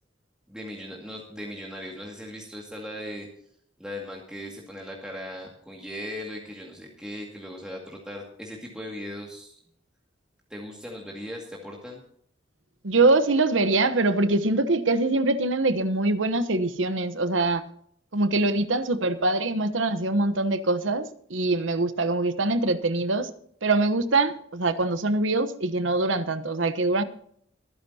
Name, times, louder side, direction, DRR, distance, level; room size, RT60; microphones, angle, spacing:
voice 1, 0.5-3.3 3.8-9.5 10.5-12.0, equal, 5° right, 2.2 m, -38 dB
voice 2, 12.8-17.6 18.1-23.3 23.6-27.0, right 2 dB, 75° right, 1.1 m, -23 dB
24.0 x 10.5 x 2.8 m
head